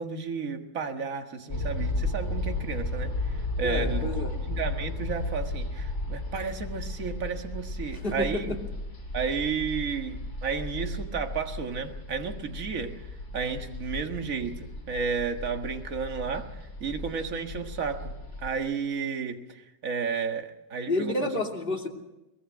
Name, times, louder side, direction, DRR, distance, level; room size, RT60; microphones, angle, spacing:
voice 1, 0.0-4.0 4.5-8.6 9.1-13.0 13.3-16.5 16.8-18.1 18.4-21.3, right 5 dB, 50° right, 5 dB, 2.0 m, -32 dB
sound 1, 1.5-18.5, left 1 dB, 45° left, 4.2 m, -34 dB
voice 2, 3.6-4.4 7.9-8.6 20.8-21.9, left 2 dB, 30° left, 0 dB, 3.0 m, -30 dB
23.5 x 20.0 x 6.4 m, 0.95 s
omnidirectional pair, 1.9 m